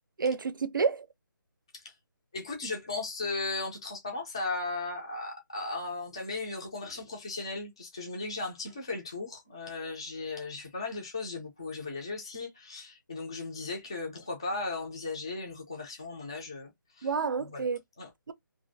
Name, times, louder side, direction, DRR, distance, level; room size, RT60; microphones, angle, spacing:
voice 1, 0.2-1.1 17.0-17.8 18.3-18.4, right 5 dB, 70° right, 0.5 m, -29 dB
voice 2, 2.3-17.1 17.4-17.6 18.0-18.1, left 3 dB, 15° left, 0.4 m, -36 dB
2.5 x 2.4 x 2.6 m
hypercardioid pair, 175°, 11 cm